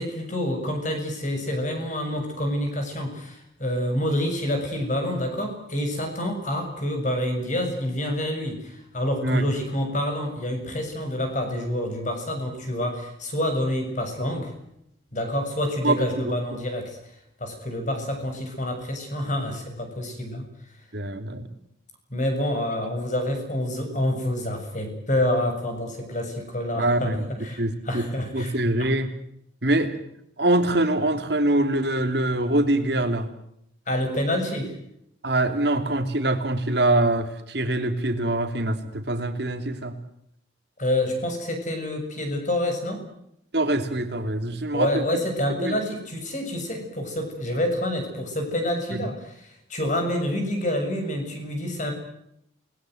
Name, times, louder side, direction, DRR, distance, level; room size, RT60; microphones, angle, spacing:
voice 1, 0.0-14.5 15.1-17.1 17.4-20.5 22.1-28.9 33.9-34.8 40.8-43.1 44.7-51.9, left 1 dB, 40° left, 4 dB, 7.1 m, -27 dB
voice 2, 20.9-21.5 26.8-27.3 27.6-28.1 28.3-29.1 29.6-30.0 30.4-33.3 35.2-40.0 43.5-45.0 45.6-45.8, right 1 dB, 55° right, 7 dB, 3.0 m, -24 dB
29.0 x 20.5 x 7.9 m, 0.75 s
head